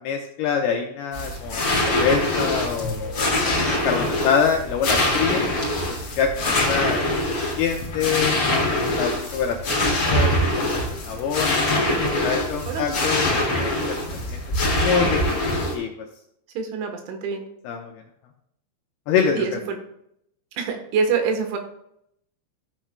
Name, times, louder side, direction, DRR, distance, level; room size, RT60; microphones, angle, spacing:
voice 1, 0.0-5.5 6.2-7.0 7.4-8.4 9.0-9.6 9.8-11.8 12.2-13.9 14.7-15.4 15.7-15.9 17.6-17.9 19.1-19.4, left 7 dB, 80° left, 1 dB, 2.3 m, -25 dB
sound 1, 1.1-15.7, left 1 dB, 35° left, 2.0 m, -23 dB
voice 2, 12.7-13.0 16.6-17.4 19.4-19.8 20.6-21.6, right 5 dB, 85° right, 4 dB, 3.7 m, -25 dB
13.5 x 7.3 x 2.2 m, 0.75 s
omnidirectional pair, 5.4 m